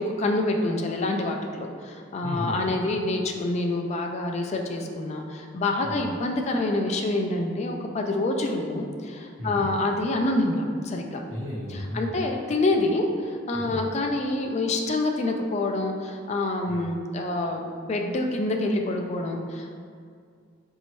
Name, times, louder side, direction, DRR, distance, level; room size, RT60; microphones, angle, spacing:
voice 1, 0.0-11.2 11.9-19.7, left 2 dB, 35° left, 3 dB, 0.3 m, -27 dB
voice 2, 2.2-2.6 5.8-5.9 9.4-9.6 11.3-12.1 13.5-13.7 16.6-16.8, left 1 dB, 80° right, -6 dB, 1.2 m, -33 dB
4.2 x 2.7 x 3.0 m, 2.2 s
head